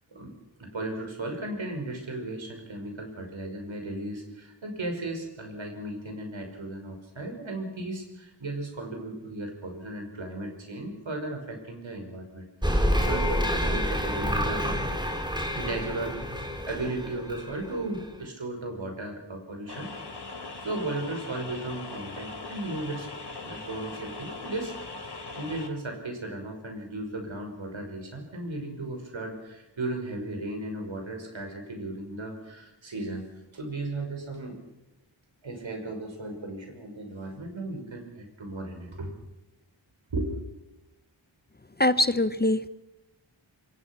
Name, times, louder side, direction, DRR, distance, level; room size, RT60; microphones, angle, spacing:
voice 1, 0.1-14.7 15.5-19.9 20.3-23.1 23.4-24.7 25.0-33.3 33.5-34.6 35.4-39.2 40.1-40.3, right 2 dB, 80° right, 4 dB, 5.7 m, -36 dB
sound 1, 12.6-18.1, equal, 10° right, 3.7 m, -28 dB
sound 2, 19.7-25.7, left 3 dB, 55° left, 3.5 m, -40 dB
voice 2, 41.8-42.7, left 1 dB, 20° left, 13 dB, 0.8 m, -23 dB
26.0 x 22.5 x 6.1 m, 1.0 s
wide cardioid pair, 70°, 46 cm